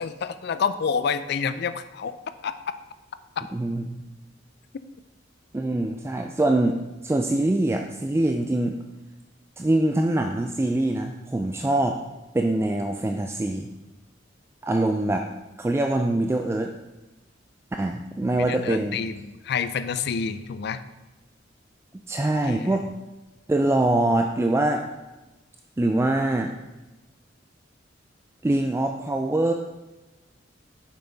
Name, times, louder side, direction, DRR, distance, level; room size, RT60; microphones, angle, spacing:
voice 1, 0.0-2.1 2.4-2.5 18.4-20.8 22.4-22.9, left 6 dB, 60° left, 12 dB, 0.4 m, -28 dB
voice 2, 3.5-4.0 5.5-8.7 9.6-12.0 12.3-13.7 14.6-15.3 15.6-16.7 17.8-19.0 22.1-22.8 23.5-24.9 25.8-26.5 28.4-29.5, right 1 dB, 15° right, 4 dB, 0.3 m, -24 dB
7.1 x 5.8 x 3.9 m, 1.1 s
head